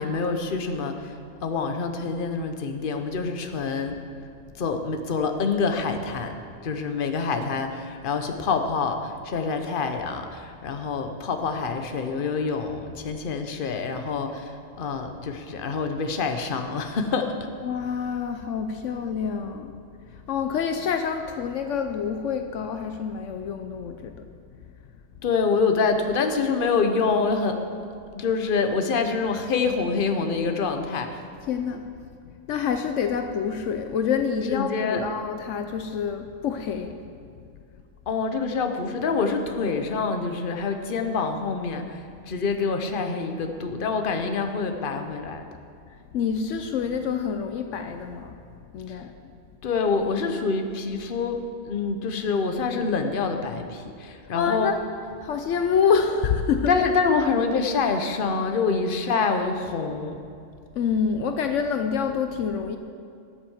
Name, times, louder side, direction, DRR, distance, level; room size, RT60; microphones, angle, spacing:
voice 1, 0.0-4.0 4.5-6.3 6.6-17.3 25.2-27.6 28.1-31.2 34.5-35.0 38.1-45.5 48.9-49.0 49.6-54.7 56.7-60.2, left 4 dB, 45° left, 6 dB, 1.0 m, -26 dB
voice 2, 17.6-19.7 20.1-24.3 31.4-31.9 32.5-37.0 45.9-49.1 54.3-54.8 55.2-56.8 60.7-62.8, left 6 dB, 75° left, 7 dB, 1.0 m, -27 dB
13.5 x 7.5 x 7.2 m, 2.4 s
omnidirectional pair, 1.3 m